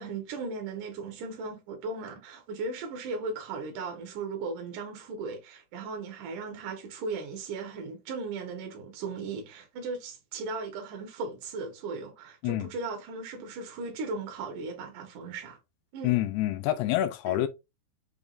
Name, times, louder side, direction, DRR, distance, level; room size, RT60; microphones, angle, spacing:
voice 1, 0.0-15.6 15.9-16.2 17.3-17.4, right 4 dB, 65° right, 2.4 m, -37 dB
voice 2, 16.0-17.5, left 14 dB, 85° left, 2.5 m, -27 dB
6.1 x 3.5 x 2.4 m
omnidirectional pair, 4.7 m